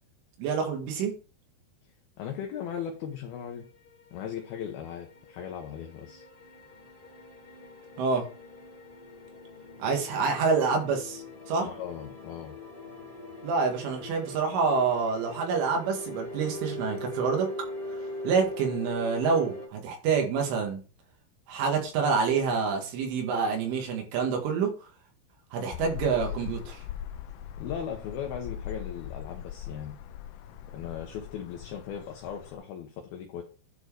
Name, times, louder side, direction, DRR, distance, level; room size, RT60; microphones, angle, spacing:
voice 1, 0.4-1.1 8.0-8.3 9.8-11.2 11.5-11.7 13.4-17.5 18.2-20.8 21.5-24.7 25.5-26.8, right 5 dB, 75° right, 2 dB, 4.4 m, -27 dB
voice 2, 2.2-3.7 4.1-6.2 11.6-12.6 27.6-30.0 30.7-33.4, left 8 dB, 70° left, 2 dB, 2.4 m, -38 dB
sound 1, 3.5-19.7, left 1 dB, 35° left, 0.9 m, -42 dB
sound 2, 25.7-32.5, left 10 dB, 90° left, 2.3 m, -40 dB
11.0 x 4.7 x 4.8 m, 0.36 s
omnidirectional pair, 5.7 m